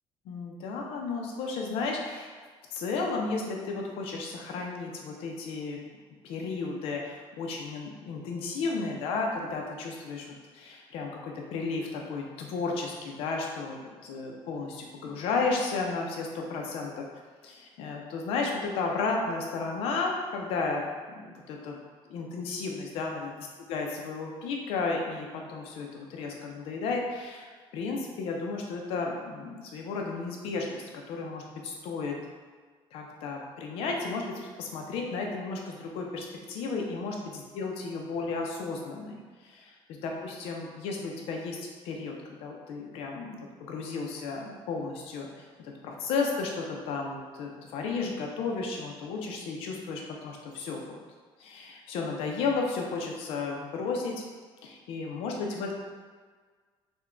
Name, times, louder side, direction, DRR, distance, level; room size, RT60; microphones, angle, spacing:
voice 1, 0.2-2.3 2.7-5.8 6.2-17.1 17.4-21.8 22.1-32.2 32.9-50.8 51.4-54.2 54.6-55.7, left 4 dB, 70° left, 0 dB, 0.6 m, -33 dB
3.5 x 2.2 x 3.7 m, 1.5 s
cardioid pair, 180°, 10 cm